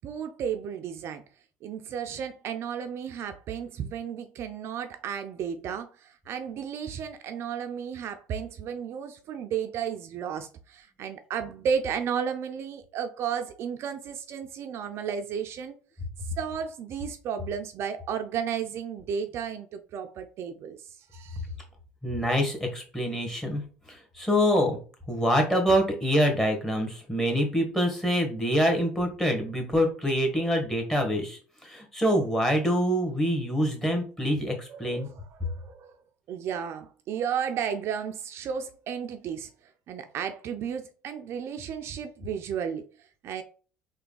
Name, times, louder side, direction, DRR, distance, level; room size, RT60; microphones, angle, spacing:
voice 1, 0.0-1.2 1.6-15.7 16.2-21.4 30.4-30.5 34.7-36.0 36.3-43.4, right 7 dB, 55° right, 0.4 m, -33 dB
voice 2, 22.0-23.6 23.9-24.8 25.1-35.1, equal, 10° left, 1.4 m, -25 dB
3.3 x 2.3 x 3.8 m
supercardioid pair, 80°, 5 cm